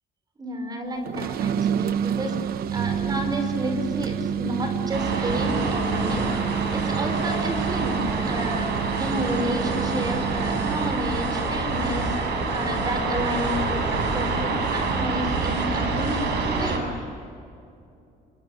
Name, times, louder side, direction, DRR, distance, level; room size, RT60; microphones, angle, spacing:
voice 1, 0.4-8.7 9.0-16.9, equal, 25° right, 5 dB, 5.4 m, -31 dB
sound 1, 1.0-11.1, right 9 dB, 65° right, 0.8 m, -28 dB
sound 2, 4.9-16.8, right 3 dB, 80° right, 6.6 m, -27 dB
27.0 x 24.0 x 8.4 m, 2.5 s
cardioid pair, 145°, 17 cm